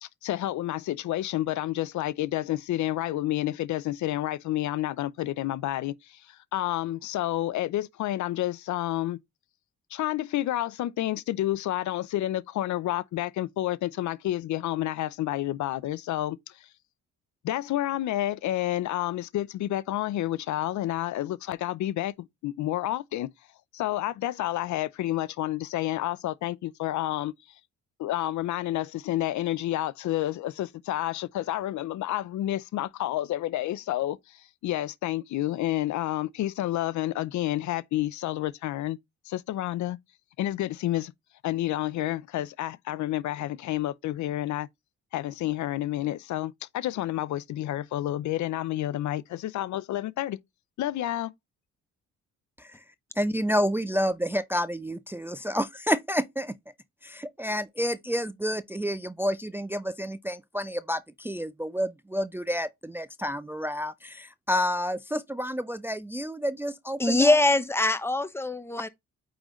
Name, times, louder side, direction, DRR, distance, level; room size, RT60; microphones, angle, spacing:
voice 1, 0.0-9.2 9.9-16.4 17.4-23.3 23.7-27.3 28.0-39.0 39.3-40.0 40.4-41.1 41.4-44.7 45.1-50.4 50.8-51.3, left 14 dB, 70° left, 0.6 m, -30 dB
voice 2, 53.2-56.5 57.0-67.4, equal, 5° right, 0.5 m, -29 dB
voice 3, 67.0-68.9, left 2 dB, 10° left, 0.9 m, -23 dB
8.8 x 3.8 x 3.1 m
cardioid pair, 90°, 30 cm